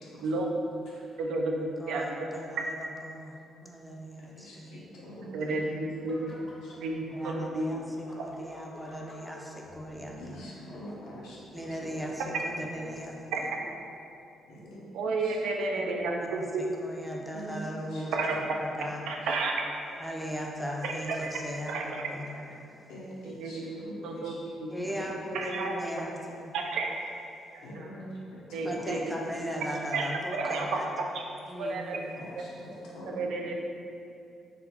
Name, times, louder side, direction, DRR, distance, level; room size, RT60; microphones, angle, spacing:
voice 1, 0.0-0.4 0.9-1.1 4.2-6.1 6.6-6.7 10.2-11.4 11.8-11.9 14.5-15.4 17.3-18.4 19.2-19.4 22.9-24.4 24.8-25.1 27.6-29.0 29.6-29.8 32.1-33.5, equal, 85° left, -6 dB, 0.7 m, -45 dB
voice 2, 1.2-2.1 5.3-6.2 6.8-7.7 13.3-13.4 14.9-16.7 18.1-18.3 19.1-19.6 20.8-20.9 21.2-21.3 21.7-22.0 23.4-24.3 24.6-24.7 25.3-25.7 26.5-27.0 27.5-27.6 28.5-29.0 29.9-30.8 31.1-31.2 31.6-32.0 33.2-33.5, right 3 dB, 85° right, 1 dB, 0.3 m, -31 dB
voice 3, 1.8-3.4 3.6-4.8 7.2-10.4 11.5-13.5 15.8-19.1 20.0-22.7 24.7-26.5 28.6-30.9 31.5-32.2, equal, 5° right, -1 dB, 0.4 m, -38 dB
sound 1, 5.9-14.0, left 1 dB, 45° left, 0.7 m, -50 dB
3.9 x 2.1 x 2.8 m, 2.6 s
cardioid pair, 90°, 0 cm